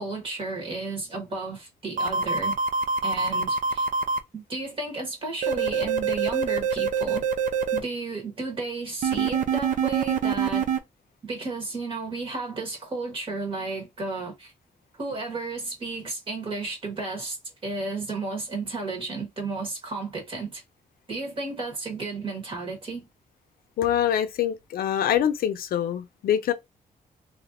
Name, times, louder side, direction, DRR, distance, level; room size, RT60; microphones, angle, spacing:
voice 1, 0.0-2.6 3.0-3.9 4.3-7.3 7.7-10.7 11.2-14.5 15.0-17.4 17.6-20.6 21.1-23.1, right 3 dB, 40° right, 1.3 m, -33 dB
sound 1, 2.0-4.2 5.4-7.8 9.0-10.8, right 6 dB, 60° right, 0.5 m, -25 dB
voice 2, 23.8-26.5, left 10 dB, 85° left, 0.5 m, -24 dB
3.4 x 2.6 x 2.5 m
wide cardioid pair, 170°, 15 cm